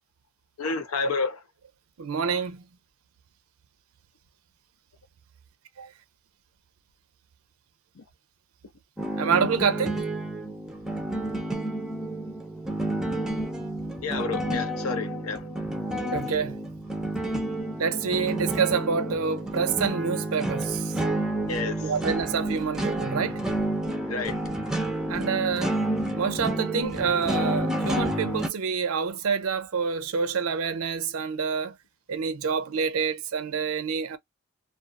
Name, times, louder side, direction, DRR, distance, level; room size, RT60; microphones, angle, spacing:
voice 1, 0.6-1.4 8.0-8.1 14.0-15.4 21.5-21.8 24.1-24.4, left 4 dB, 85° left, 0.6 m, -30 dB
voice 2, 2.0-2.6 5.8-5.9 9.2-10.0 16.1-16.6 17.8-20.9 21.8-23.4 25.1-25.7 26.1-31.7 32.1-34.2, right 6 dB, 80° right, 0.5 m, -27 dB
sound 1, 9.0-28.5, right 1 dB, 5° right, 0.4 m, -30 dB
2.3 x 2.3 x 2.5 m
head